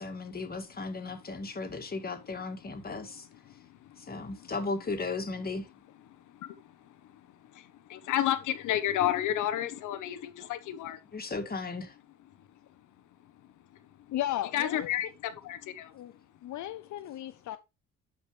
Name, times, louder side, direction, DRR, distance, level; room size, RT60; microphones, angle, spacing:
voice 1, 0.0-3.3 4.1-5.6 11.1-11.9, left 3 dB, 30° left, 2.1 m, -36 dB
voice 2, 7.5-11.0 14.5-15.9, left 12 dB, 90° left, 1.1 m, -31 dB
voice 3, 14.1-14.9 15.9-16.1 16.4-17.6, left 13 dB, 70° left, 0.7 m, -35 dB
12.0 x 5.2 x 3.3 m
cardioid pair, 90°, 30 cm